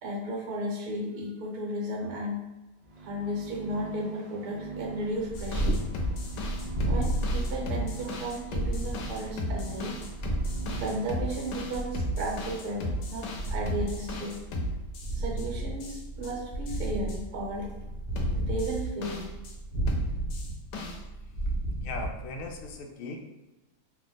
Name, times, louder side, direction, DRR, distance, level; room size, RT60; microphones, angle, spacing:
voice 1, 0.0-2.4 3.0-5.8 6.9-10.0 10.8-14.4 15.1-17.7 18.3-19.2, right 1 dB, 65° right, -2 dB, 1.4 m, -34 dB
sound 1, 2.8-11.9, right 6 dB, 45° right, 1.0 m, -44 dB
Purr, 5.0-22.7, right 1 dB, 10° right, 0.9 m, -33 dB
sound 2, 5.4-15.5 15.8-16.3 16.7-17.2 18.2-19.5 19.9-21.0, left 1 dB, 85° left, 1.3 m, -35 dB
voice 2, 21.8-23.3, left 3 dB, 70° left, 1 dB, 0.8 m, -38 dB
3.4 x 2.3 x 3.9 m, 1.1 s
omnidirectional pair, 1.8 m